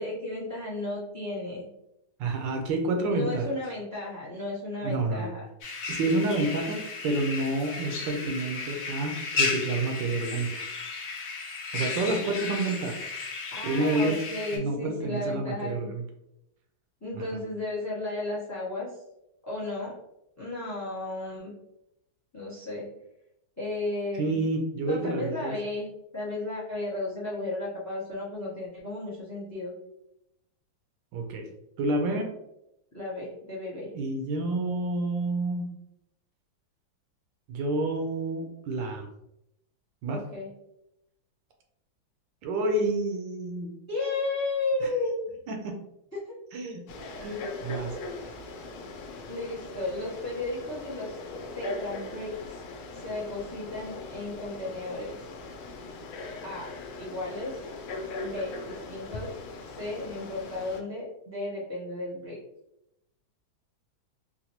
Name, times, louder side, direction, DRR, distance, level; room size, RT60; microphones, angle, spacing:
voice 1, 0.0-1.7 3.1-5.4 13.5-15.9 17.0-19.0 19.4-20.0 20.4-21.5 22.3-22.9 23.6-24.4 24.8-29.7 32.9-33.9 40.1-40.5 43.9-45.1 46.3-46.4 49.3-51.2 51.5-52.6 53.0-55.1 56.4-57.7 58.2-59.4 59.8-62.4, left 2 dB, 25° left, -5 dB, 0.3 m, -34 dB
voice 2, 2.2-3.5 4.8-5.3 5.9-10.7 11.7-13.1 13.6-14.2 14.5-16.0 24.1-25.6 31.1-31.5 31.8-32.3 33.9-35.7 37.5-39.1 40.0-40.2 42.4-43.7 44.8-44.9 45.5-45.8 46.5-46.8 47.2-48.0, right 2 dB, 75° right, 4 dB, 1.2 m, -29 dB
sound 1, 5.6-14.6, left 4 dB, 60° left, 0.9 m, -34 dB
Frog, 46.9-60.8, left 3 dB, 90° left, 1.4 m, -40 dB
4.0 x 2.1 x 2.8 m, 0.84 s
omnidirectional pair, 2.2 m